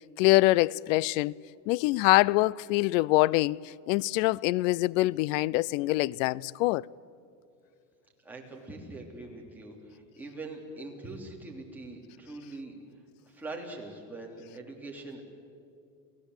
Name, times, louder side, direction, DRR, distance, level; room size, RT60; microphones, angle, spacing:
voice 1, 0.2-1.3 1.7-6.8, left 19 dB, 70° left, 0.6 m, -24 dB
voice 2, 8.2-12.8 13.2-15.2, right 2 dB, 5° right, 3.4 m, -43 dB
28.5 x 17.5 x 8.1 m
supercardioid pair, 145°, 39 cm